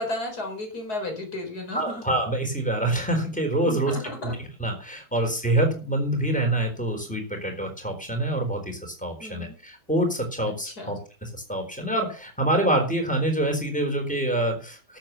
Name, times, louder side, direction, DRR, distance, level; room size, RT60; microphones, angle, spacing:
voice 1, 0.0-2.0 3.7-4.3 9.2-9.5 10.5-11.0, left 1 dB, 85° left, 3 dB, 4.8 m, -33 dB
voice 2, 1.7-3.9 4.2-4.3 4.6-15.0, right 1 dB, 5° left, 3 dB, 4.1 m, -26 dB
13.0 x 7.5 x 6.9 m, 0.37 s
omnidirectional pair, 1.6 m